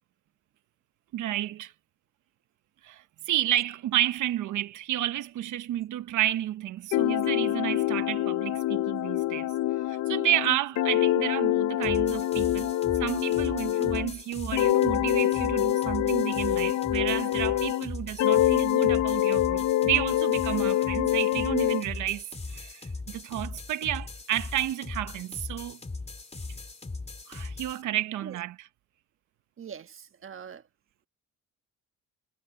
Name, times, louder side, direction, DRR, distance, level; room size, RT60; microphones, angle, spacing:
voice 1, 1.1-1.7 2.8-9.5 9.9-12.7 13.0-25.8 27.3-28.7, right 13 dB, 80° right, 1.2 m, -31 dB
sound 1, 6.9-14.1 14.5-17.9 18.2-21.8, left 13 dB, 70° left, 0.7 m, -25 dB
sound 2, 11.8-27.8, left 3 dB, 20° left, 2.6 m, -39 dB
voice 2, 29.6-30.7, right 7 dB, 45° right, 1.4 m, -43 dB
cardioid pair, 90°, 30 cm